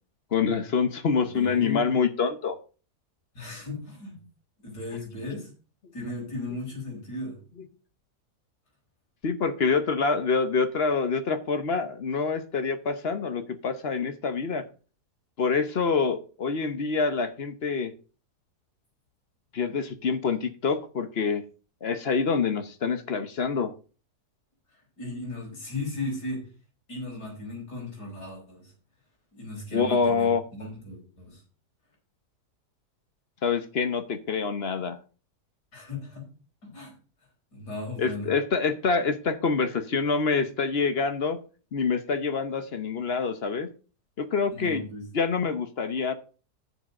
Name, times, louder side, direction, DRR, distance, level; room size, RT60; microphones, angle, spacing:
voice 1, 0.3-2.6 9.2-14.7 15.4-17.9 19.5-21.4 21.8-23.7 29.7-30.4 33.4-35.0 38.0-41.4 41.7-43.7 44.2-44.9 45.1-46.1, left 5 dB, 45° left, 10 dB, 1.0 m, -26 dB
voice 2, 1.3-1.9 3.4-4.2 4.6-5.5 5.9-7.4 25.0-26.5 26.9-28.7 29.3-31.4 35.7-36.3 36.6-37.0 37.5-38.3 44.5-45.1, left 2 dB, 80° left, -1 dB, 5.1 m, -36 dB
7.1 x 6.7 x 6.3 m, 0.36 s
omnidirectional pair, 1.7 m